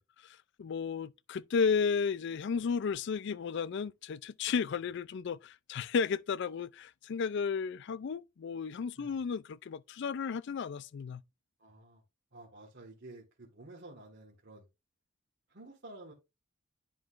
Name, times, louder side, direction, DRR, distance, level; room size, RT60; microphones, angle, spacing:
voice 1, 0.2-11.2, left 6 dB, 55° left, 0.4 m, -33 dB
voice 2, 11.6-12.0 12.3-14.7 15.5-16.1, right 2 dB, 55° right, 1.6 m, -51 dB
10.5 x 3.9 x 2.5 m
head